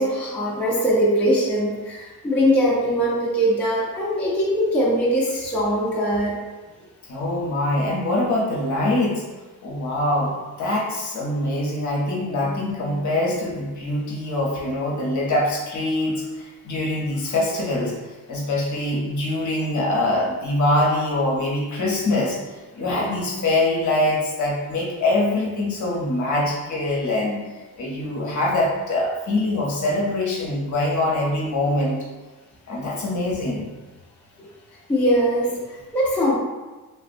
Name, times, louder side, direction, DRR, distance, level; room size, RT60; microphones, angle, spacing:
voice 1, 0.0-6.4 34.4-34.5 34.9-36.3, equal, 5° left, -6 dB, 0.3 m, -21 dB
voice 2, 7.1-9.2 9.6-32.1 32.7-33.7, left 1 dB, 50° left, -3 dB, 0.7 m, -24 dB
3.4 x 2.1 x 2.5 m, 1.2 s
cardioid pair, 160°, 37 cm